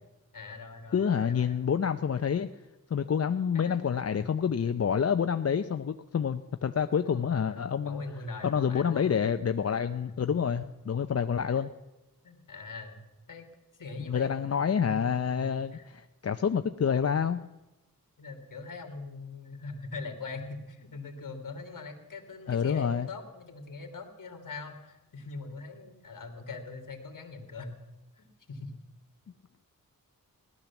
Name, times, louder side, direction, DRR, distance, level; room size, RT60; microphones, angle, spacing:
voice 1, 0.3-1.6 3.5-4.4 7.1-9.2 9.7-9.8 10.2-10.7 11.4-11.7 12.2-13.0 13.3-13.5 13.8-15.8 18.2-27.7 28.1-28.7, left 3 dB, 65° left, 5 dB, 2.6 m, -42 dB
voice 2, 0.9-2.5 2.9-8.0 8.4-11.7 14.1-17.4 22.5-23.1, left 7 dB, 45° left, 9 dB, 0.6 m, -28 dB
16.5 x 12.0 x 7.1 m, 1.0 s
wide cardioid pair, 85°, 35 cm